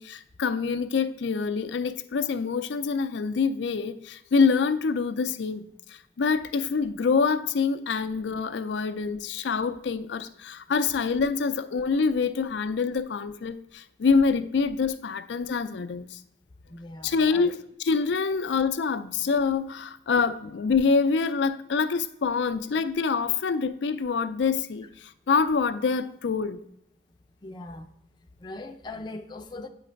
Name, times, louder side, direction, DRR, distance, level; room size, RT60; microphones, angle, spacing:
voice 1, 0.0-16.2 17.0-26.6, left 5 dB, 90° left, 0.4 m, -26 dB
voice 2, 16.7-17.5 27.4-27.9 28.4-29.7, left 2 dB, 25° left, 0.5 m, -40 dB
8.5 x 3.2 x 5.1 m
head